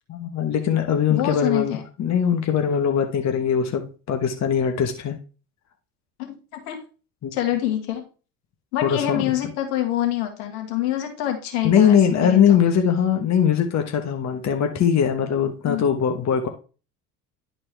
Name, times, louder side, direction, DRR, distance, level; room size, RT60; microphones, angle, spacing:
voice 1, 0.1-5.2 7.2-7.3 8.8-9.3 11.6-16.5, left 8 dB, 35° left, 4 dB, 1.2 m, -21 dB
voice 2, 1.1-1.8 6.2-6.8 7.3-8.1 8.7-12.0 12.2-12.6 15.7-15.8, left 12 dB, 70° left, 4 dB, 1.9 m, -26 dB
10.5 x 4.4 x 3.4 m, 0.35 s
hypercardioid pair, 75°, 46 cm